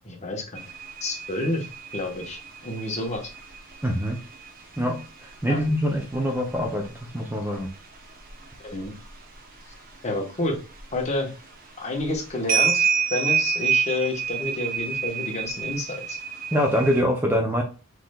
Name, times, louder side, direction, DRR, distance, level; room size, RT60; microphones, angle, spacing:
voice 1, 0.0-0.6 1.0-1.7 1.9-3.3 5.5-5.6 8.6-8.9 10.0-10.6 10.9-11.3 11.8-16.2, left 2 dB, 30° left, 1 dB, 1.1 m, -29 dB
sound 1, 0.6-7.1 7.5-9.2 9.6-10.9 11.5-11.6 12.0-17.0, right 7 dB, 40° right, 0.8 m, -29 dB
voice 2, 3.8-4.2 4.8-7.7 16.5-17.6, equal, 10° right, 1 dB, 0.5 m, -24 dB
5.8 x 3.2 x 2.2 m, 0.34 s
head